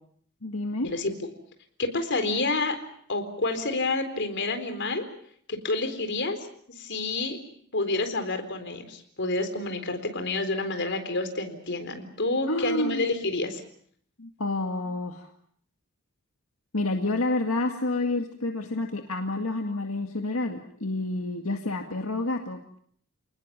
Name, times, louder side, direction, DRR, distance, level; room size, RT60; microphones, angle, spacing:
voice 1, 0.4-0.9 12.5-13.1 14.2-15.3 16.7-22.8, left 2 dB, 80° left, 3 dB, 2.0 m, -29 dB
voice 2, 1.8-2.8 3.1-5.0 5.5-6.4 6.8-7.4 7.7-13.6, left 2 dB, 60° left, 7 dB, 4.1 m, -28 dB
29.0 x 20.0 x 7.4 m, 0.64 s
head